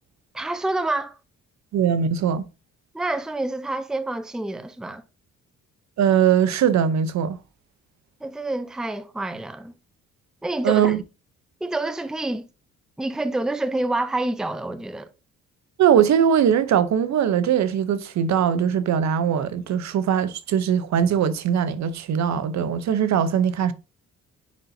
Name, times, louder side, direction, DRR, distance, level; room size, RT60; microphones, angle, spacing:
voice 1, 0.3-1.2 2.9-5.0 8.2-9.7 10.4-11.0 11.6-12.5 13.0-15.1, right 2 dB, ahead, 0.5 m, -27 dB
voice 2, 1.7-2.4 6.0-7.4 10.6-11.0 15.8-23.7, right 8 dB, 65° right, 0.8 m, -21 dB
9.8 x 4.1 x 2.7 m
cardioid pair, 90°, 30 cm